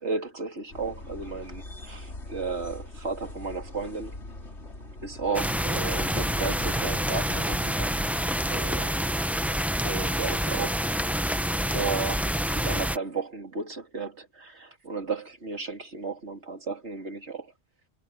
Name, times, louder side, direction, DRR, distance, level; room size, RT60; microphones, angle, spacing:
voice 1, 0.0-4.2 5.0-8.0 8.5-9.1 9.8-10.8 11.6-17.5, right 4 dB, 80° right, 3.4 m, -34 dB
sound 1, 0.7-9.0, left 1 dB, 80° left, 4.2 m, -43 dB
sound 2, 5.3-13.0, equal, ahead, 0.6 m, -27 dB
omnidirectional pair, 1.1 m